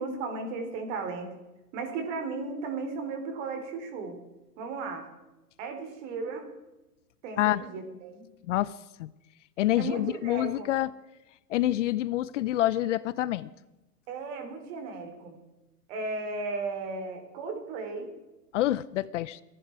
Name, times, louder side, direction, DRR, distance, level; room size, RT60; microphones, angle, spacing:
voice 1, 0.0-1.3 1.7-4.2 4.6-5.1 5.6-6.5 7.2-8.2 9.8-10.7 14.1-15.4 15.9-18.1, right 4 dB, 50° right, 6 dB, 4.0 m, -35 dB
voice 2, 9.6-10.9 11.5-13.5 18.5-19.4, left 14 dB, 50° left, 19 dB, 0.6 m, -27 dB
24.0 x 11.5 x 4.7 m, 1.0 s
hypercardioid pair, 125°, 47 cm